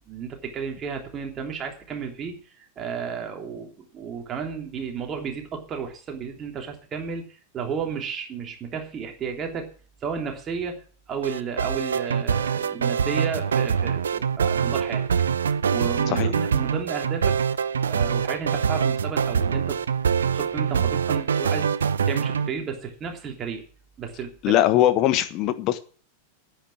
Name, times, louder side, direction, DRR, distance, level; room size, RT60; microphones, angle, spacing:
voice 1, 0.0-9.7 10.0-10.8 11.1-15.0 15.7-17.4 17.8-19.8 20.3-23.6 24.0-24.6, right 6 dB, 25° right, 3.2 m, -33 dB
sound 1, 11.2-22.5, right 7 dB, 70° right, 0.6 m, -24 dB
voice 2, 24.4-25.8, left 13 dB, 40° left, 1.3 m, -21 dB
10.0 x 9.0 x 8.6 m
figure-of-eight pair, 90°, 0 cm